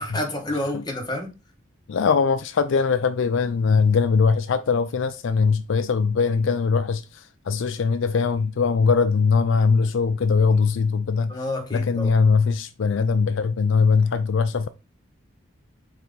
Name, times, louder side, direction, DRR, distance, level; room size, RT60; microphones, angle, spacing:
voice 1, 0.0-1.3 11.3-12.2, left 1 dB, 20° left, 1.3 m, -29 dB
voice 2, 1.9-11.3 11.7-14.7, left 5 dB, 65° left, 0.4 m, -21 dB
4.7 x 3.9 x 5.2 m
head